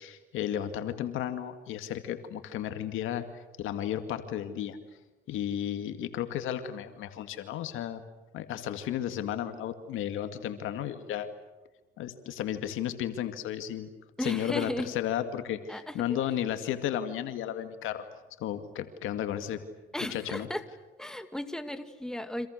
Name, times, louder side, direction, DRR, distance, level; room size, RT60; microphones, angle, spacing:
voice 1, 0.0-3.3 3.6-4.8 5.3-8.0 8.3-11.3 12.0-13.9 14.2-18.1 18.4-19.6 20.0-20.5, left 10 dB, 90° left, 8 dB, 2.2 m, -33 dB
voice 2, 14.2-14.9 15.7-16.2 19.9-20.6 21.0-22.5, left 1 dB, 5° left, 8 dB, 2.2 m, -35 dB
30.0 x 26.5 x 6.7 m, 1.1 s
cardioid pair, 90°, 20 cm